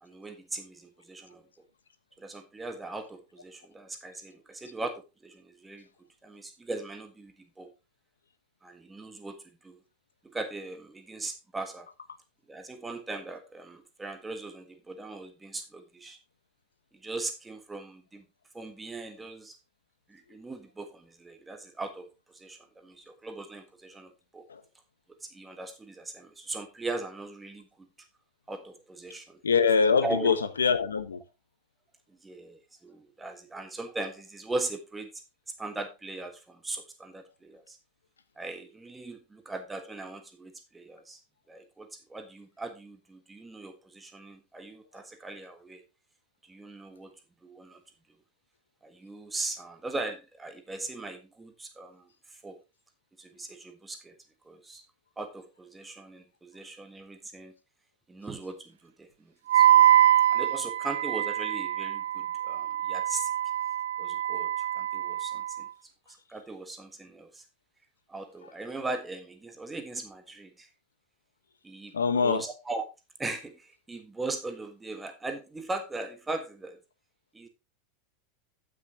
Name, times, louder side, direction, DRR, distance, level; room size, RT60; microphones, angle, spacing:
voice 1, 0.0-1.4 2.2-5.9 6.2-7.7 8.6-9.4 9.6-9.8 10.2-11.9 12.5-16.2 17.0-18.2 18.5-19.6 20.1-24.5 25.3-27.7 28.5-29.4 30.0-30.3 32.2-35.1 35.6-37.8 38.4-41.2 41.5-45.8 46.5-47.1 47.4-47.8 48.8-52.1 52.4-52.6 53.2-54.1 54.4-54.8 55.2-57.5 58.1-59.1 59.5-59.9 60.3-63.3 64.0-65.7 66.3-67.4 68.1-70.7 71.6-72.0 72.2-72.8 73.2-76.8 77.3-77.5, right 2 dB, 15° right, 1.5 m, -39 dB
voice 2, 29.4-31.2 71.9-72.4, left 5 dB, 90° left, 1.2 m, -24 dB
Wind instrument woodwind instrument, 59.5-65.6, right 11 dB, 75° right, 0.6 m, -24 dB
14.0 x 6.2 x 2.9 m
hypercardioid pair, 95°, 0 cm